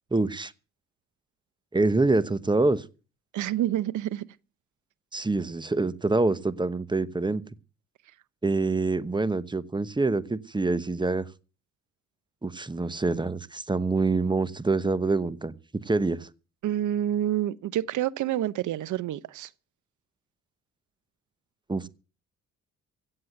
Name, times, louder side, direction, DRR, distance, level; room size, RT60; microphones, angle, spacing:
voice 1, 0.1-0.5 1.7-2.8 5.1-7.4 8.4-11.3 12.4-16.3 21.7-21.9, right 3 dB, 15° right, 1.0 m, -26 dB
voice 2, 3.3-4.3 16.6-19.5, right 12 dB, 75° right, 1.0 m, -28 dB
16.5 x 7.8 x 7.9 m
cardioid pair, 90°, 30 cm